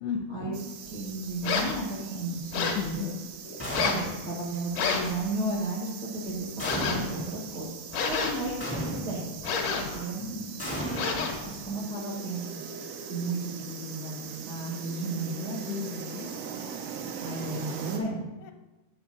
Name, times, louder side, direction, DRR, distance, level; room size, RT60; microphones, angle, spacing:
sound 1, 0.5-18.0, right 7 dB, 80° right, 2.8 m, -41 dB
voice 1, 0.8-3.1 3.4-7.7 8.0-9.4 9.8-10.4 11.4-15.7 17.2-18.3, right 2 dB, 45° right, -5 dB, 1.3 m, -34 dB
sound 2, 1.4-1.8 2.5-2.9 3.7-4.1 4.7-5.2 6.6-7.1 7.9-8.5 9.4-10.0 10.9-11.5, left 5 dB, 65° left, 2.4 m, -29 dB
voice 2, 2.6-3.3 9.8-10.1 15.7-16.3 18.4-18.5, left 8 dB, 80° left, 5 dB, 2.6 m, -35 dB
sound 3, 3.6-4.3 6.6-7.4 8.6-9.4 10.6-11.8, equal, 5° left, 1.0 m, -35 dB
8.7 x 4.7 x 6.7 m, 1.1 s
omnidirectional pair, 4.7 m